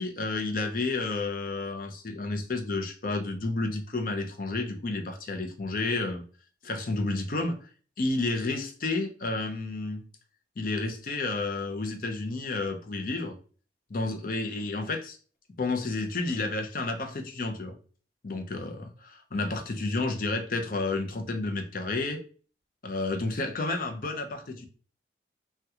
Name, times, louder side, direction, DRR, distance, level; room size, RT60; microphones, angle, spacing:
voice 1, 0.0-6.2 6.6-7.6 8.0-10.0 10.6-13.4 13.9-15.2 15.6-17.8 18.2-22.2 22.8-24.7, left 3 dB, 50° left, 5 dB, 0.6 m, -31 dB
3.5 x 2.2 x 2.8 m, 0.39 s
head